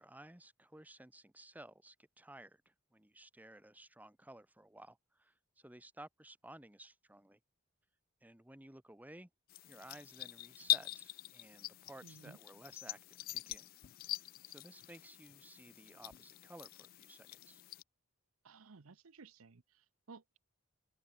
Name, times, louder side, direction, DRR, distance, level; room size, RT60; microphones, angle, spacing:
voice 1, 0.0-7.4 8.2-9.3 9.6-13.7 14.5-17.6, right 1 dB, 10° right, 1.2 m, -56 dB
sound 1, 9.5-17.8, left 15 dB, 45° left, 0.3 m, -42 dB
voice 2, 12.0-12.4 18.4-20.4, right 4 dB, 90° right, 0.9 m, -57 dB
open air
head